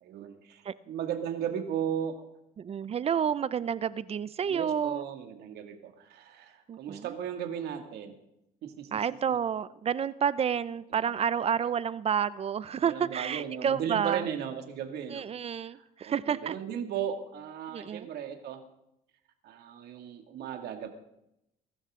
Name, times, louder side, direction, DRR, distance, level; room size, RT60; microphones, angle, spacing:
voice 1, 0.0-2.2 4.5-8.2 8.6-8.9 9.3-9.4 10.9-11.0 11.6-11.7 12.8-15.2 15.7-18.6 19.4-20.9, right 8 dB, 75° right, 5 dB, 2.2 m, -36 dB
voice 2, 2.6-5.0 6.7-7.2 8.9-14.3 15.1-16.6 17.7-18.1, right 8 dB, 35° right, 17 dB, 0.5 m, -30 dB
21.5 x 12.5 x 3.7 m, 0.82 s
cardioid pair, 110°, 17 cm